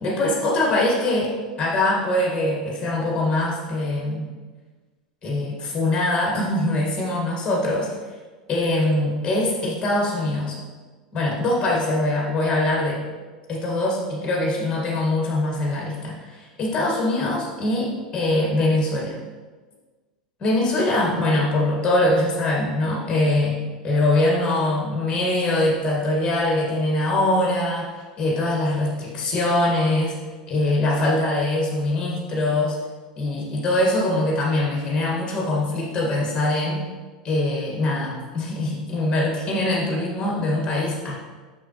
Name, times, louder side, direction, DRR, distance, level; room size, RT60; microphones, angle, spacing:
voice 1, 0.0-4.3 5.2-7.9 8.5-10.6 11.1-13.0 13.5-19.2 20.4-23.6 23.8-27.9 28.2-30.1 30.5-32.8 33.2-36.8 37.2-41.1, left 1 dB, 20° left, -2 dB, 1.9 m, -23 dB
6.2 x 5.9 x 3.2 m, 1.3 s
figure-of-eight pair, 85°, 4 cm